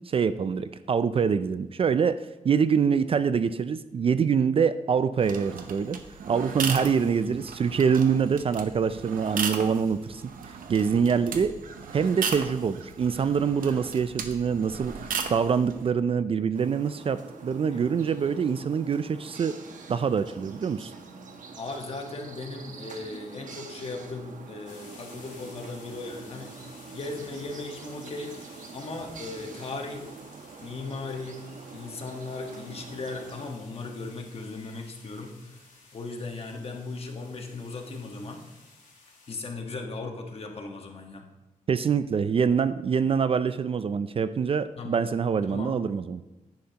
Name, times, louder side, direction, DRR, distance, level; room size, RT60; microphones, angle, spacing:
voice 1, 0.0-6.0 6.3-11.6 11.9-15.0 15.3-19.6 19.9-20.9 41.7-46.2, right 6 dB, 40° right, 13 dB, 0.4 m, -25 dB
sound 1, 5.2-15.9, right 6 dB, 90° right, 0.9 m, -36 dB
voice 2, 6.7-7.4 11.1-11.5 17.7-17.8 21.6-26.7 26.9-28.4 28.7-30.1 30.6-35.6 35.9-38.4 39.3-41.3 44.8-45.0 45.4-45.8, left 3 dB, 45° left, 3 dB, 1.4 m, -37 dB
sound 2, 16.5-33.5, right 4 dB, 70° right, 1.1 m, -45 dB
sound 3, 24.7-39.4, left 3 dB, 75° left, 3.4 m, -54 dB
10.5 x 9.5 x 2.9 m, 1.1 s
wide cardioid pair, 120°, 14 cm